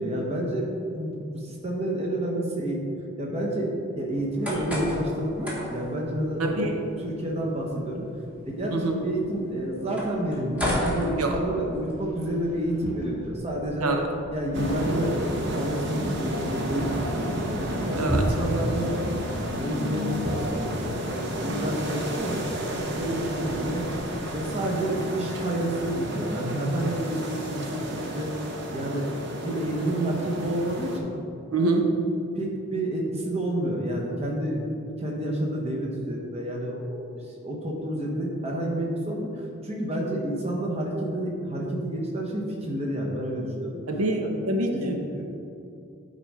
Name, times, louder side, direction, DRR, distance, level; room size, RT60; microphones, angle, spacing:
voice 1, 0.0-2.8 3.2-6.7 7.0-8.0 8.4-13.9 14.3-17.5 17.9-18.9 19.3-23.9 24.2-28.3 28.7-29.1 29.4-31.1 32.4-34.7 35.0-43.8 44.2-44.3 44.7-45.2, right 1 dB, 30° right, -2 dB, 1.1 m, -29 dB
sound 1, 4.1-11.9, equal, 5° right, 1.2 m, -35 dB
voice 2, 6.4-6.7 8.7-9.0 11.2-11.3 13.8-14.0 18.0-18.3 31.5-31.9 43.9-45.0, right 2 dB, 85° right, 3 dB, 0.8 m, -25 dB
sound 2, 11.2-24.4, equal, 10° left, 1.6 m, -37 dB
sound 3, 14.5-31.0, equal, 50° right, 0.9 m, -32 dB
9.6 x 4.2 x 4.9 m, 2.7 s
head